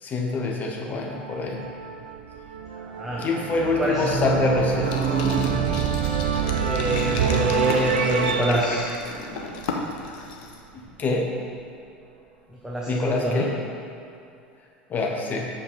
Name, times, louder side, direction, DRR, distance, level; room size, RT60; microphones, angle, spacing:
voice 1, 0.0-1.6 3.2-5.0 10.7-11.3 12.9-13.6 14.9-15.5, left 3 dB, 30° left, 0 dB, 1.3 m, -25 dB
sound 1, 1.0-10.1, right 6 dB, 70° right, 0.5 m, -29 dB
voice 2, 2.8-3.2 3.8-4.1 6.6-8.8 12.6-13.5, right 1 dB, 10° right, -5 dB, 1.1 m, -25 dB
sound 2, 3.5-9.0 9.3-9.4 9.6-9.7 10.0-10.1, right 6 dB, 35° right, 2.0 m, -28 dB
sound 3, 4.8-10.6, left 4 dB, 60° left, 0.8 m, -35 dB
7.2 x 5.3 x 5.1 m, 2.5 s
figure-of-eight pair, 75°, 5 cm